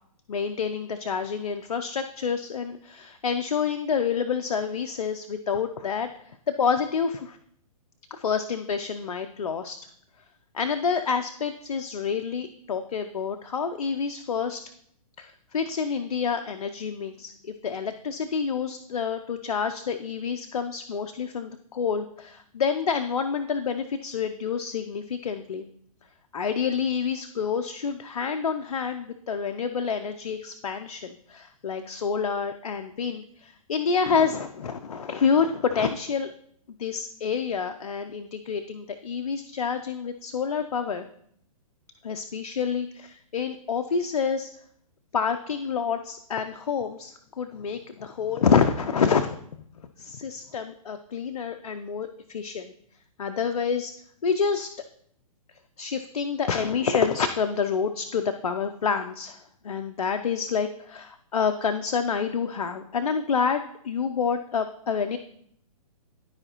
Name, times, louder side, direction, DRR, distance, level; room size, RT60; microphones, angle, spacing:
voice 1, 0.3-7.4 8.1-9.8 10.5-14.6 15.2-25.6 26.3-36.3 36.8-41.1 42.0-44.5 45.1-49.4 50.0-52.7 53.2-53.9 54.2-54.7 55.8-59.4 59.6-65.2, left 6 dB, 85° left, 7 dB, 0.6 m, -28 dB
12.5 x 4.9 x 3.0 m, 0.67 s
hypercardioid pair, 135°, 19 cm